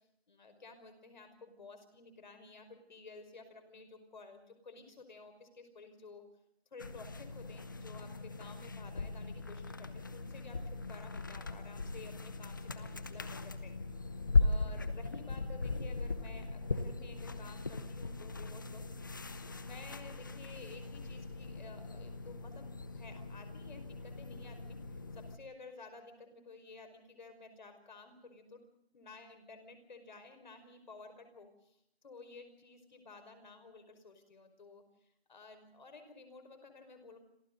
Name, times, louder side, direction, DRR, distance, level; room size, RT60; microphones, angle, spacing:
voice 1, 0.3-6.2 6.7-13.4 13.6-13.8 14.4-18.8 19.5-24.8 25.1-28.6 28.9-31.8 32.0-34.8 35.3-37.2, left 3 dB, 45° left, 7 dB, 5.4 m, -53 dB
sound 1, 6.8-25.4, left 3 dB, 20° left, 0.9 m, -38 dB
29.0 x 27.0 x 4.0 m, 0.77 s
figure-of-eight pair, 170°, 31 cm